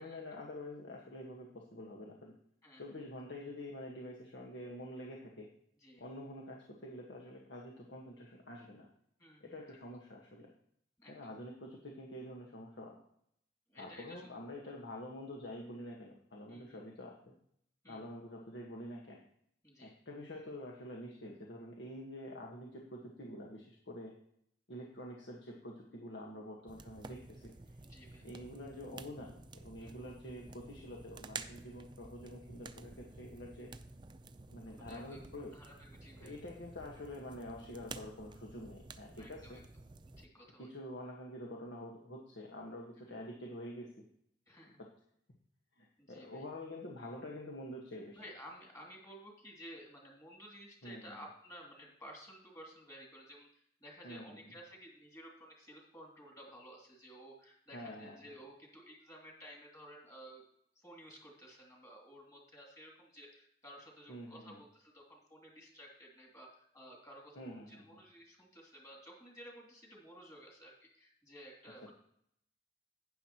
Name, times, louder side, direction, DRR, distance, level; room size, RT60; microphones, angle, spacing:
voice 1, 0.0-2.3 2.8-5.5 6.0-8.9 9.4-10.5 11.1-12.9 13.7-17.3 17.9-19.2 19.8-24.1 24.7-27.5 28.2-29.3 29.6-33.7 34.5-35.5 36.2-39.6 40.6-43.9 45.8-48.2 50.8-51.2 54.0-54.2 57.7-58.2 64.1-64.6 67.3-67.8, left 1 dB, 90° left, -2 dB, 1.5 m, -47 dB
voice 2, 2.6-3.0 5.8-6.0 9.2-9.5 11.0-11.3 13.7-14.2 16.5-16.8 17.8-18.0 19.6-19.9 27.8-28.3 29.8-30.0 34.6-35.2 35.5-36.3 39.2-39.6 40.2-40.7 44.5-44.8 46.0-46.5 48.2-60.4 60.8-71.9, equal, 20° left, -1 dB, 2.7 m, -54 dB
sound 1, 26.7-40.3, right 4 dB, 25° right, 0.5 m, -51 dB
12.0 x 9.3 x 3.0 m, 0.70 s
head